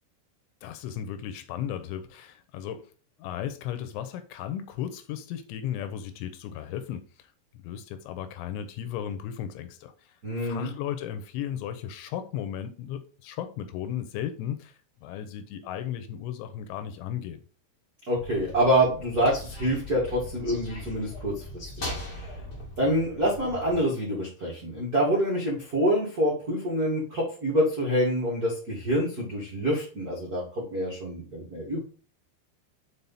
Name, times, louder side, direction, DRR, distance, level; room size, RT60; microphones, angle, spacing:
voice 1, 0.6-2.9 3.2-7.3 7.6-9.9 10.4-14.8 15.0-17.4, left 10 dB, 80° left, 2.9 m, -35 dB
voice 2, 10.2-10.7 18.1-22.3 22.8-31.8, equal, 75° right, 0.8 m, -26 dB
sound 1, 18.1-23.8, left 1 dB, 50° left, 0.9 m, -40 dB
6.9 x 4.7 x 4.0 m
omnidirectional pair, 5.5 m